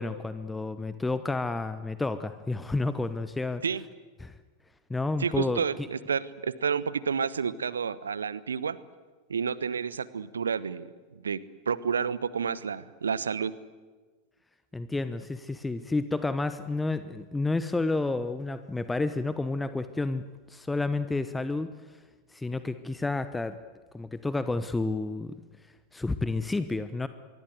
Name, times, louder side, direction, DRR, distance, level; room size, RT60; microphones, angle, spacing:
voice 1, 0.0-3.6 4.2-4.3 4.9-5.6 14.7-22.0 22.3-23.6 23.9-25.3 25.9-27.1, left 3 dB, 10° left, 12 dB, 1.0 m, -30 dB
voice 2, 5.2-8.8 9.3-10.9 11.2-11.4 11.7-13.5, right 6 dB, 70° right, 18 dB, 1.0 m, -30 dB
25.0 x 23.0 x 8.1 m, 1.4 s
figure-of-eight pair, 90°, 0 cm